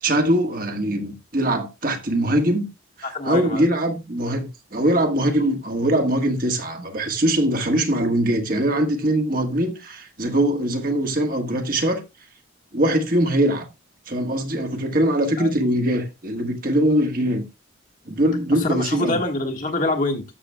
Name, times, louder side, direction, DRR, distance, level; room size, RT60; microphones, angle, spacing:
voice 1, 0.0-2.7 3.0-12.0 12.7-13.7 14.1-17.5 18.1-19.2, right 1 dB, 45° right, 1.5 m, -22 dB
voice 2, 3.0-3.6 15.4-15.5 18.5-20.2, left 2 dB, 40° left, 1.5 m, -25 dB
13.0 x 6.8 x 2.2 m
head